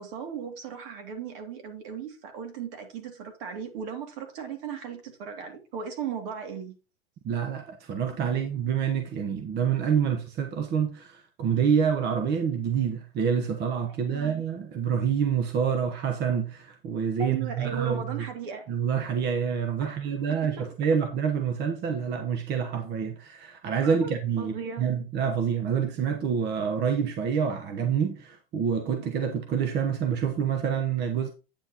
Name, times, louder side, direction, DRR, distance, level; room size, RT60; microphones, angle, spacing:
voice 1, 0.0-6.7 14.0-14.4 17.2-18.7 19.8-20.7 23.8-24.1 24.4-24.9, right 7 dB, 60° right, 2.5 m, -37 dB
voice 2, 7.2-18.2 18.7-31.3, right 7 dB, 35° right, 1.1 m, -27 dB
8.8 x 7.8 x 2.9 m
supercardioid pair, 125°, 30 cm